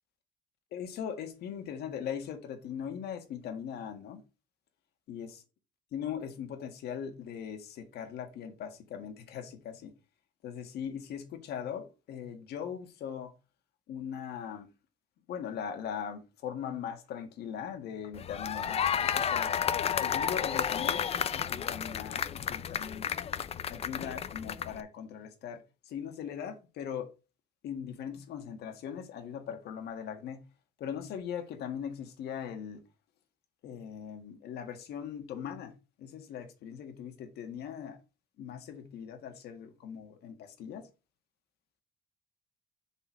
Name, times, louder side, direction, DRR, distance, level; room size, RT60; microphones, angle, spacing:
voice 1, 0.7-4.2 5.1-5.4 5.9-9.9 10.4-13.3 13.9-14.7 15.3-19.5 20.0-21.0 21.3-23.1 23.7-27.1 27.6-30.4 30.8-32.8 33.6-35.7 36.0-38.0 38.4-40.9, left 8 dB, 70° left, 1.7 m, -40 dB
sound 1, 18.1-24.8, left 8 dB, 35° left, 0.5 m, -32 dB
5.5 x 4.4 x 6.2 m
cardioid pair, 110°, 17 cm